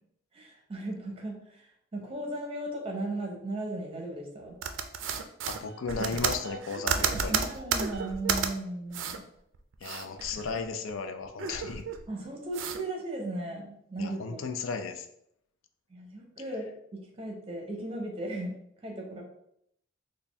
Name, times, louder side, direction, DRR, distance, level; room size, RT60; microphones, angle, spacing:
voice 1, 0.3-1.6 1.9-4.6 7.1-9.2 12.1-14.4 15.9-18.6 18.8-19.2, right 1 dB, 30° right, 0 dB, 0.8 m, -36 dB
sound 1, 4.6-8.5 8.9-9.2 9.5-10.9 11.2-12.1 12.5-12.8, right 6 dB, 70° right, 0.4 m, -31 dB
voice 2, 5.5-7.4 9.8-11.8 14.0-15.1, left 5 dB, 85° left, 7 dB, 0.4 m, -35 dB
4.1 x 2.2 x 3.4 m, 0.73 s
head